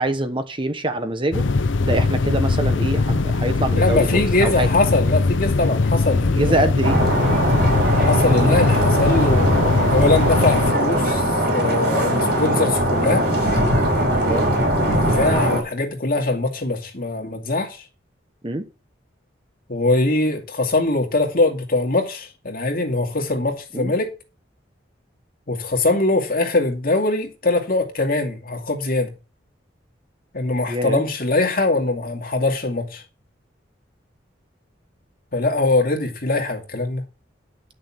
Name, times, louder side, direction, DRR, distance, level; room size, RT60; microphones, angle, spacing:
voice 1, 0.0-1.5 1.8-4.7 6.3-7.0 14.3-14.5 18.4-18.7 23.7-23.9 30.7-31.0, right 1 dB, 25° right, 1.0 m, -24 dB
sound 1, 1.3-10.7, left 3 dB, 80° left, 0.7 m, -21 dB
voice 2, 3.7-6.7 8.0-11.2 11.5-13.3 14.9-17.8 19.7-24.1 25.5-29.1 30.3-33.0 35.3-37.1, left 2 dB, 50° left, 2.5 m, -22 dB
sound 2, 6.8-15.6, right 1 dB, 55° right, 5.6 m, -20 dB
11.0 x 6.6 x 6.0 m
head